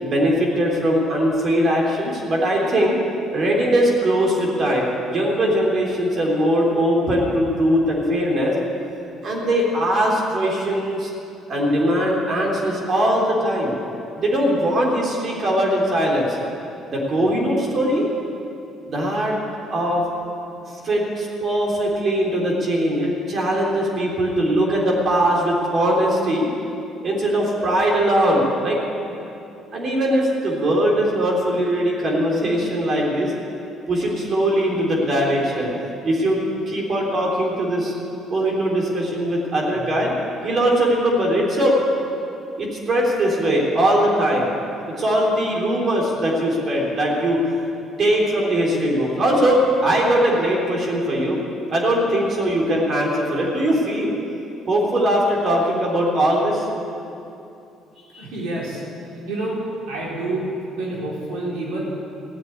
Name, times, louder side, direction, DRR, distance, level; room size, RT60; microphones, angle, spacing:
voice 1, 0.0-3.0 3.3-8.6 9.2-11.1 11.5-13.8 14.2-16.4 16.9-18.1 18.9-19.4 19.7-20.1 20.7-26.5 27.0-28.8 29.7-33.3 33.9-35.7 36.0-37.9 38.3-40.1 40.4-41.8 42.6-44.5 45.0-47.5 48.0-51.4 51.7-54.1 54.7-56.7 58.1-58.3, equal, 50° right, -2 dB, 3.7 m, -20 dB
voice 2, 58.2-58.8 59.3-59.6 59.9-60.4 60.8-61.8, right 2 dB, 90° right, -5 dB, 4.6 m, -28 dB
16.0 x 7.5 x 9.7 m, 2.7 s
cardioid pair, 95°, 0 cm